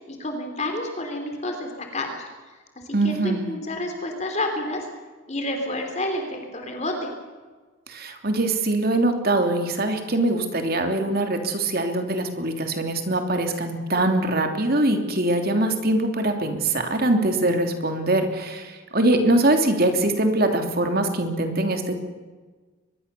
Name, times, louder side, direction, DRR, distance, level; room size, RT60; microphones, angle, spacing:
voice 1, 0.1-2.3 2.7-4.8 5.3-7.1, left 1 dB, 35° left, 4 dB, 3.4 m, -29 dB
voice 2, 2.9-3.4 7.9-22.0, right 1 dB, 45° right, 5 dB, 3.1 m, -23 dB
24.0 x 21.5 x 6.9 m, 1.4 s
head